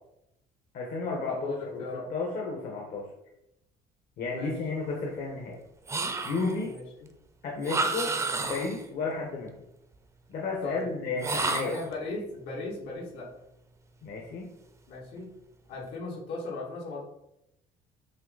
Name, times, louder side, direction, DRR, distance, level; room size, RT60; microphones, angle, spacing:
voice 1, 0.7-1.8 2.1-3.1 4.2-5.6 6.2-6.7 7.4-8.1 8.4-9.5 10.3-11.7 14.0-14.5, left 3 dB, 60° left, -1 dB, 1.3 m, -32 dB
voice 2, 1.3-2.1 4.3-4.5 6.6-7.1 10.6-10.9 11.6-13.3 14.9-15.3 15.7-17.0, left 3 dB, 85° left, -4 dB, 2.6 m, -37 dB
sound 1, 5.9-6.7 7.6-8.9 11.2-11.9, right 3 dB, 15° right, 0.6 m, -30 dB
8.3 x 3.3 x 4.0 m, 0.83 s
cardioid pair, 165°, 17 cm